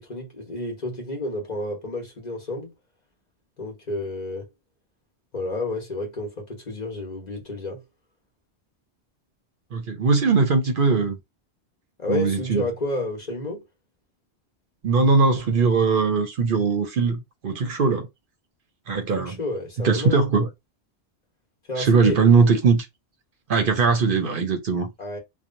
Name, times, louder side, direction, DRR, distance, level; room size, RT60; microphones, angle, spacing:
voice 1, 0.0-2.7 3.6-4.5 5.3-7.8 12.0-13.6 19.2-20.2 21.7-22.2 25.0-25.2, left 2 dB, 40° left, 1.1 m, -30 dB
voice 2, 9.7-11.2 12.1-12.6 14.8-18.1 18.9-19.4 19.8-20.5 21.8-22.9 23.5-24.9, right 4 dB, 60° right, 0.7 m, -20 dB
2.9 x 2.3 x 2.5 m
omnidirectional pair, 1.1 m